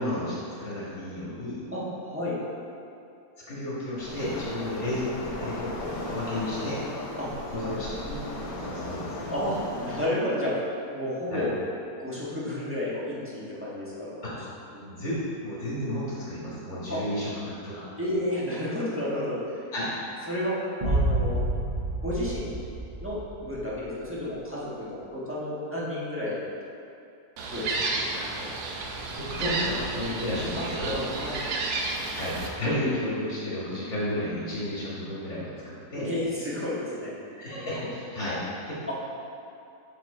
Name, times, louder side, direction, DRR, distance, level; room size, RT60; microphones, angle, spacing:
voice 1, 0.0-1.6 3.5-6.8 7.5-9.4 11.3-11.5 14.8-17.8 19.7-19.9 28.2-28.5 29.1-31.1 32.1-36.1 37.4-38.8, left 1 dB, 50° left, -8 dB, 2.0 m, -32 dB
voice 2, 1.7-2.4 7.2-7.3 7.6-7.9 9.3-10.6 10.9-11.5 12.0-14.3 14.7-14.8 16.9-17.0 18.0-19.6 20.3-20.5 20.8-21.4 22.0-22.6 23.0-26.5 27.5-27.7 28.4-28.5 30.6-30.7 31.2-31.4 36.0-37.1 38.9-39.0, left 1 dB, 10° right, -8 dB, 1.3 m, -31 dB
Waves surf, 4.0-10.0, left 1 dB, 70° left, 1.6 m, -36 dB
sound 1, 20.8-23.8, right 1 dB, 40° right, 0.6 m, -28 dB
Gull seagull, 27.4-32.5, right 3 dB, 75° right, 1.2 m, -31 dB
6.0 x 5.9 x 4.2 m, 2.7 s
omnidirectional pair, 1.7 m